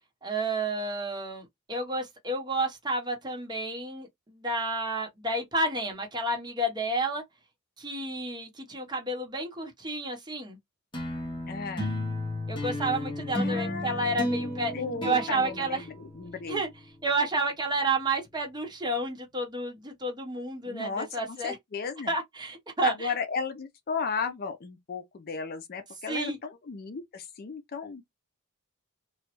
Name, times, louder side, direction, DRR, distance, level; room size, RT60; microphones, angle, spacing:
voice 1, 0.2-7.2 7.8-10.6 12.5-14.7 15.0-15.9 16.5-16.7 17.0-21.6 22.1-23.1 26.1-26.4, right 2 dB, 20° right, 0.9 m, -30 dB
sound 1, 10.9-16.5, left 1 dB, 20° left, 1.0 m, -33 dB
voice 2, 11.5-11.9 13.4-16.6 20.7-22.1 22.8-28.0, left 5 dB, 45° left, 0.4 m, -35 dB
3.0 x 2.2 x 3.0 m
head